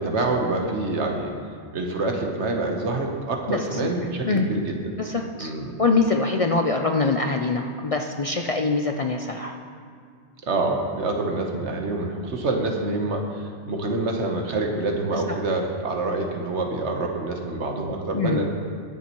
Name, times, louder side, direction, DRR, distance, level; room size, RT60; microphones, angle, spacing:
voice 1, 0.0-1.3 1.7-4.8 5.4-5.8 10.5-18.5, right 2 dB, 80° right, 2 dB, 1.4 m, -26 dB
voice 2, 3.5-3.9 4.2-4.5 5.0-5.5 5.8-9.6 15.1-15.2 18.1-18.5, left 3 dB, 45° left, 3 dB, 0.4 m, -24 dB
21.0 x 7.2 x 3.0 m, 2.1 s
omnidirectional pair, 1.2 m